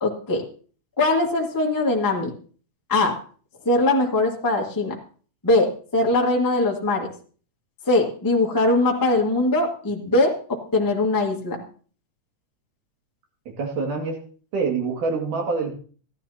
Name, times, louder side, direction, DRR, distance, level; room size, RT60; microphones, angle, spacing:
voice 1, 0.0-0.4 1.0-2.3 2.9-3.2 3.6-4.9 5.4-7.1 7.9-10.3 10.7-11.6, left 2 dB, 15° left, -1 dB, 0.8 m, -21 dB
voice 2, 13.6-14.2 14.5-15.7, right 4 dB, 85° right, 1 dB, 3.7 m, -25 dB
16.0 x 11.5 x 2.8 m, 0.42 s
omnidirectional pair, 3.5 m